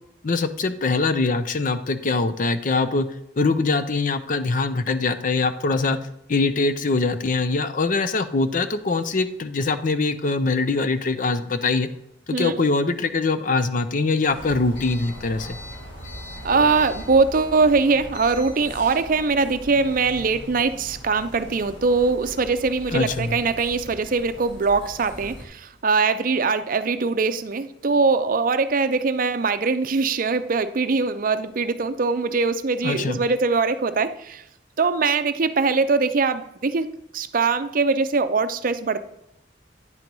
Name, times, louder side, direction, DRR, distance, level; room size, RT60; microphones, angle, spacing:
voice 1, 0.2-3.1 3.4-6.0 6.3-11.9 12.3-15.6 22.9-23.3 32.8-33.2, left 3 dB, 45° left, 11 dB, 0.6 m, -23 dB
sound 1, 14.3-25.4, equal, 80° left, 2.1 m, -39 dB
voice 2, 16.4-34.4 34.8-36.9 37.1-39.0, right 4 dB, 50° right, 11 dB, 0.5 m, -22 dB
9.7 x 4.5 x 5.3 m, 0.79 s
head